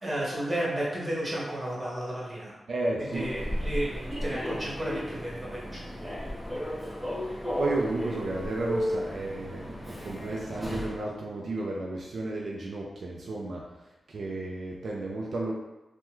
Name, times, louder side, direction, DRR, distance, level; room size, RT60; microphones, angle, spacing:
voice 1, 0.0-2.5 3.1-5.8, right 1 dB, 20° right, -5 dB, 1.2 m, -32 dB
voice 2, 2.7-3.3 7.6-13.8 14.1-15.5, right 2 dB, 75° right, -2 dB, 0.4 m, -33 dB
Human voice / Subway metro underground, 3.1-11.0, equal, ahead, 0.9 m, -34 dB
3.4 x 2.1 x 2.9 m, 1.0 s
cardioid pair, 80°, 0 cm